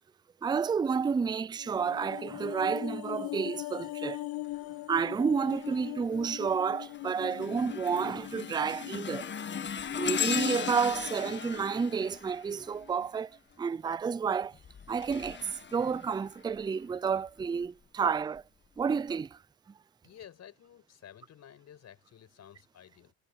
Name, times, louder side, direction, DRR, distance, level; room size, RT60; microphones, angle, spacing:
voice 1, 0.4-4.3 4.9-9.3 10.0-14.6 14.9-18.4 18.8-19.4, right 6 dB, 10° right, 0.5 m, -30 dB
sound 1, 1.6-10.0 10.3-10.5, left 18 dB, 65° left, 1.0 m, -41 dB
sound 2, 5.5-5.9 6.4-13.2 14.4-16.6 17.3-17.5 18.4-18.5, left 8 dB, 30° left, 1.7 m, -37 dB
voice 2, 20.0-23.1, left 10 dB, 45° left, 5.3 m, -53 dB
supercardioid pair, 90°, 37 cm